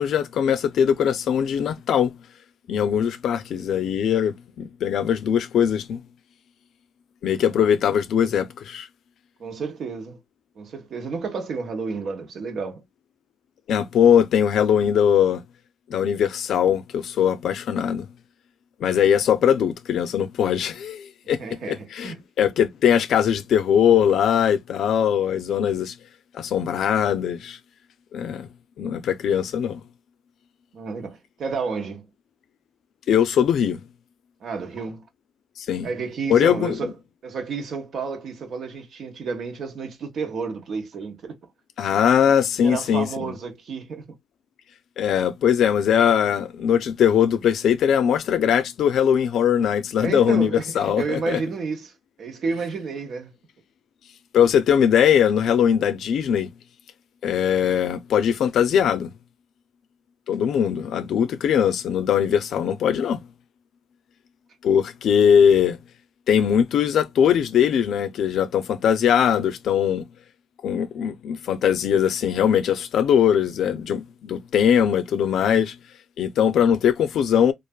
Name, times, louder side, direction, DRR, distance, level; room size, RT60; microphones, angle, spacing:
voice 1, 0.0-2.2 2.7-6.0 7.2-8.9 13.7-15.4 15.9-18.1 18.8-26.0 26.3-27.6 28.1-28.5 28.8-29.8 33.1-33.8 35.6-35.9 36.3-36.9 41.8-43.3 45.0-51.4 54.3-56.5 57.2-59.1 60.3-63.2 64.6-65.8 66.3-70.1 70.6-75.8 76.2-77.5, left 8 dB, 70° left, 0.4 m, -21 dB
voice 2, 9.4-10.2 10.6-12.8 21.2-22.2 30.7-32.1 34.4-35.1 35.8-36.9 37.2-41.4 42.6-44.1 50.0-53.3, right 5 dB, 60° right, 1.1 m, -31 dB
3.1 x 2.4 x 2.2 m
cardioid pair, 90°, 0 cm